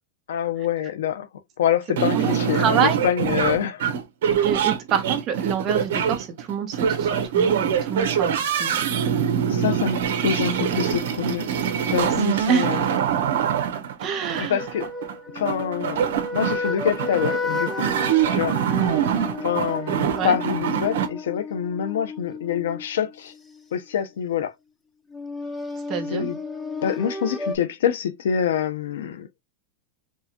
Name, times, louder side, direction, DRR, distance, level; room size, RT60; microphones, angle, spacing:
voice 1, 0.3-1.3 1.6-3.9 9.5-11.5 11.8-12.9 14.4-14.8 15.3-16.0 16.3-17.8 18.3-18.6 19.4-23.3 23.7-24.5 26.1-26.4 26.8-29.3, left 8 dB, 90° left, 0.7 m, -25 dB
voice 2, 1.9-3.0 4.2-8.8 11.9-12.1 12.5-12.9 14.0-14.6 20.1-20.4 25.9-26.3, right 8 dB, 25° right, 1.0 m, -27 dB
sound 1, 2.0-21.1, right 8 dB, 75° right, 1.0 m, -24 dB
sound 2, 14.6-23.6 25.1-27.6, left 2 dB, 5° left, 0.5 m, -32 dB
4.7 x 2.3 x 2.8 m
supercardioid pair, 165°, 0 cm